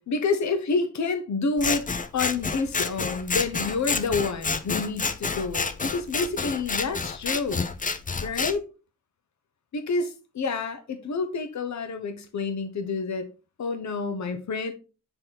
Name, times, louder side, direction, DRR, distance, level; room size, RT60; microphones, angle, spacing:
voice 1, 0.0-1.9 2.1-7.7 8.2-8.7 9.7-13.3 13.6-14.7, left 4 dB, 65° left, 0.9 m, -28 dB
Scissors, 1.6-8.5, left 4 dB, 25° left, 0.6 m, -29 dB
6.6 x 4.0 x 3.9 m
wide cardioid pair, 110°, 30 cm